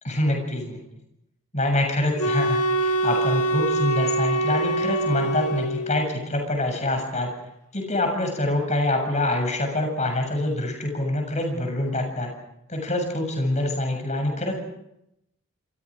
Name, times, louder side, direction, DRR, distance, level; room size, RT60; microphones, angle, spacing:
voice 1, 0.0-0.8 1.5-7.3 7.7-12.3 12.7-14.5, left 1 dB, 30° left, 3 dB, 7.4 m, -25 dB
sound 1, 2.2-6.1, right 2 dB, 80° left, 1.9 m, -24 dB
28.0 x 27.5 x 5.0 m, 0.80 s
head